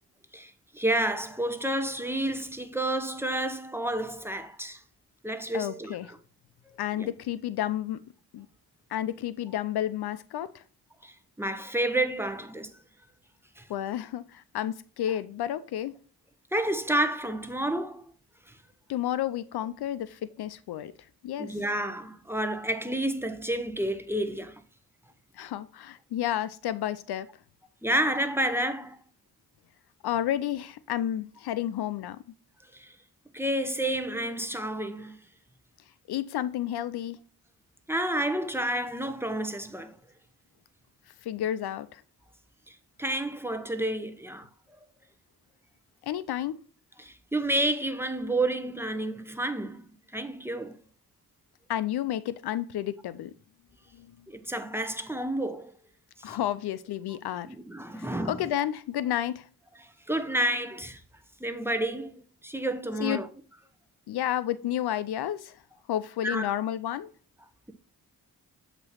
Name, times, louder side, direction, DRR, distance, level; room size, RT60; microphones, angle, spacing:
voice 1, 0.3-4.8 5.2-6.2 6.9-7.1 11.0-12.7 13.6-13.7 16.5-18.1 21.4-24.6 27.8-29.0 32.7-32.9 33.3-35.2 37.9-40.0 42.7-44.5 47.0-49.9 50.1-50.7 54.3-55.7 56.2-56.4 57.5-58.4 60.1-61.0 61.4-63.3 66.2-66.5, right 1 dB, 5° right, 0.9 m, -30 dB
voice 2, 5.5-6.1 6.8-8.0 8.3-8.5 8.9-10.6 13.7-16.0 18.9-20.9 21.2-21.6 25.3-27.3 30.0-32.2 36.1-37.2 41.2-42.0 46.0-46.6 51.7-53.3 53.9-54.1 56.2-57.5 58.0-59.5 63.0-63.3 64.1-65.6 65.9-67.1, left 11 dB, 75° left, 0.5 m, -31 dB
7.7 x 3.0 x 5.7 m
cardioid pair, 50°, 39 cm